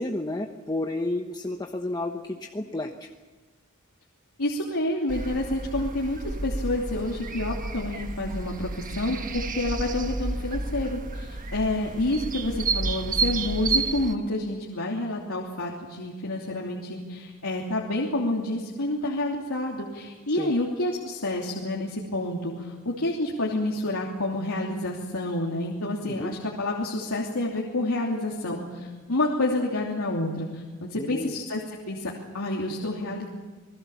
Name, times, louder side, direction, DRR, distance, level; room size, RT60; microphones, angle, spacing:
voice 1, 0.0-3.1 20.4-20.5 26.1-26.3 30.9-31.4, left 1 dB, 20° left, 3 dB, 1.1 m, -31 dB
voice 2, 4.4-31.6 31.9-33.3, left 1 dB, 75° left, -3 dB, 3.1 m, -29 dB
sound 1, 5.1-14.2, right 3 dB, 40° right, 1.3 m, -31 dB
28.0 x 20.5 x 7.2 m, 1.3 s
head